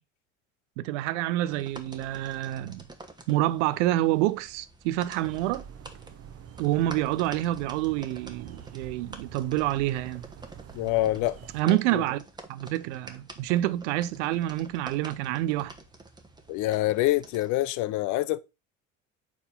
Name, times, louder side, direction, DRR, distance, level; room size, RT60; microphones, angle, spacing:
voice 1, 0.8-2.8 3.3-5.6 6.6-10.2 11.5-12.2 12.5-15.7, right 15 dB, 65° right, 0.6 m, -27 dB
sound 1, 1.5-17.6, right 2 dB, 10° right, 1.1 m, -48 dB
sound 2, 5.2-11.6, right 8 dB, 40° right, 0.8 m, -46 dB
voice 2, 10.7-11.4 11.6-12.0 16.5-18.4, left 16 dB, 50° left, 0.6 m, -26 dB
4.8 x 4.1 x 5.2 m
hypercardioid pair, 65°, 37 cm